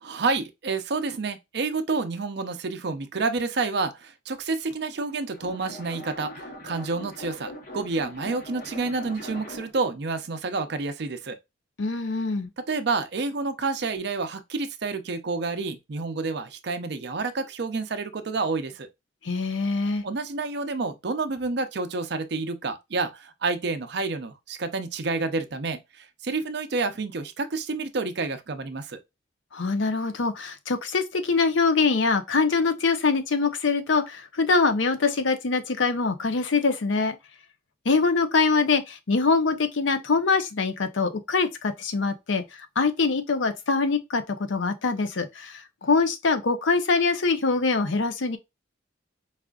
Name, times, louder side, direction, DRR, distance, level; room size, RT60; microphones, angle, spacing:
voice 1, 0.0-11.4 12.6-18.9 20.0-29.0, right 3 dB, 60° right, 0.5 m, -29 dB
sound 1, 5.0-9.9, equal, 45° left, 0.9 m, -41 dB
voice 2, 11.8-12.5 19.2-20.0 29.5-37.2 37.8-42.4 42.8-44.2 44.5-48.4, left 4 dB, 75° left, 0.6 m, -24 dB
4.8 x 2.4 x 2.3 m
head